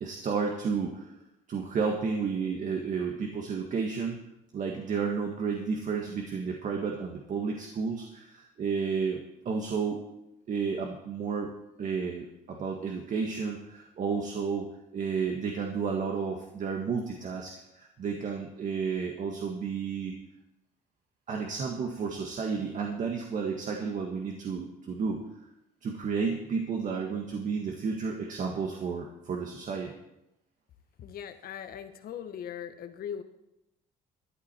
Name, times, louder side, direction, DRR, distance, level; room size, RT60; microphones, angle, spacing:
voice 1, 0.0-1.1 1.5-4.2 4.5-9.2 9.5-10.0 10.5-11.5 11.8-20.2 21.3-25.2 25.8-29.9, right 5 dB, 50° right, 2 dB, 1.6 m, -32 dB
voice 2, 31.0-33.2, left 9 dB, 60° left, 9 dB, 1.3 m, -39 dB
13.5 x 11.0 x 4.4 m, 0.88 s
cardioid pair, 110°, 17 cm